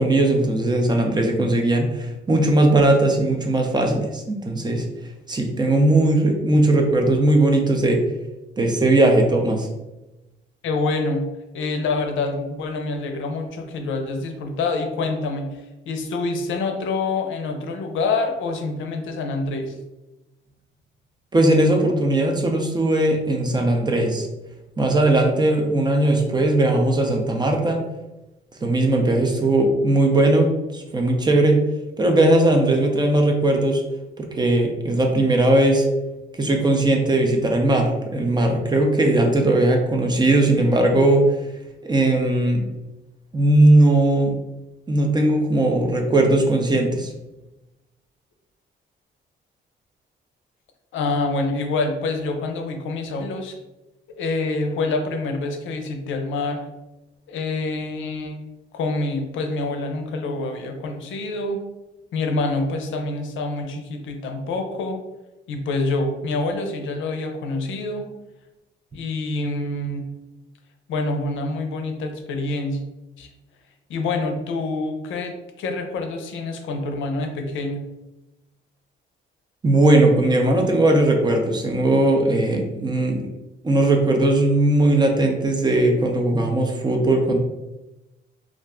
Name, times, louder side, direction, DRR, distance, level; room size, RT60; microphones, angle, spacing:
voice 1, 0.0-4.9 5.3-8.0 8.6-9.7 21.3-24.3 24.8-27.8 28.6-31.6 32.0-33.8 34.2-35.9 36.3-41.2 41.8-42.6 43.3-44.3 44.9-47.1 79.6-83.3 83.6-87.4, right 1 dB, 20° right, 2 dB, 0.5 m, -18 dB
voice 2, 10.6-11.2 11.5-15.5 15.9-19.7 50.9-53.6 54.1-56.6 57.3-58.4 58.7-61.6 62.1-65.0 65.5-68.1 68.9-70.0 70.9-72.8 73.2-73.3 73.9-75.3 75.6-77.8, left 3 dB, 75° left, 4 dB, 0.5 m, -26 dB
2.4 x 2.1 x 3.6 m, 1.0 s
cardioid pair, 90°, 20 cm